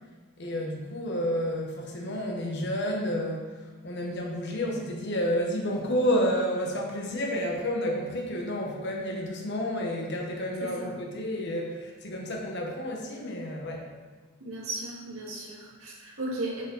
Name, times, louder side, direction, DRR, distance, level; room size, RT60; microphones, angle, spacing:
voice 1, 0.4-3.5 3.8-13.9, equal, 55° left, 0 dB, 1.2 m, -30 dB
voice 2, 10.6-11.0 14.4-16.6, right 2 dB, 85° right, -4 dB, 2.0 m, -36 dB
8.3 x 5.0 x 4.0 m, 1.3 s
head